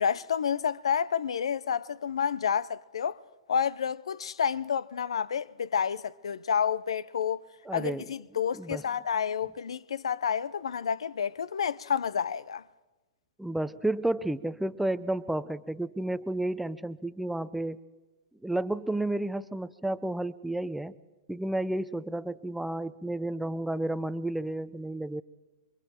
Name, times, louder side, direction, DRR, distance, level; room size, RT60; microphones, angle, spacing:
voice 1, 0.0-3.2 3.5-7.4 7.7-12.6, left 7 dB, 75° left, 0.6 m, -29 dB
voice 2, 7.7-8.1 8.5-8.8 13.4-17.8 18.4-20.9 21.3-25.2, right 1 dB, 5° right, 0.6 m, -31 dB
27.5 x 23.5 x 4.5 m
hypercardioid pair, 110°, 3 cm